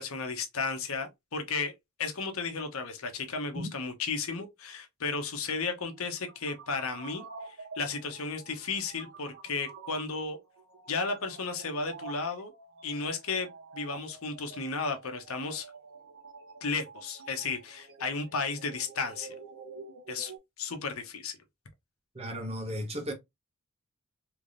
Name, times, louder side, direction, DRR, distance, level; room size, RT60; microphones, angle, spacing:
voice 1, 0.0-1.7 2.0-10.4 10.9-12.5 12.8-15.7 16.6-19.3 20.1-20.3 20.6-21.4, left 4 dB, 80° left, 0.8 m, -34 dB
sound 1, 5.9-20.4, right 4 dB, 65° right, 0.8 m, -48 dB
voice 2, 22.1-23.1, equal, 30° right, 1.0 m, -35 dB
3.3 x 2.9 x 2.5 m
head